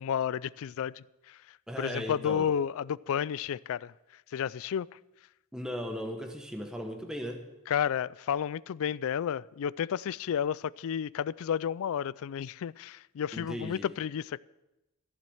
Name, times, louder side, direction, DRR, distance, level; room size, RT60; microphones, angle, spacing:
voice 1, 0.0-5.0 7.7-14.4, left 8 dB, 65° left, 0.3 m, -32 dB
voice 2, 1.7-2.5 5.5-7.4 13.3-13.9, equal, 5° right, 1.1 m, -37 dB
15.0 x 7.5 x 7.8 m
head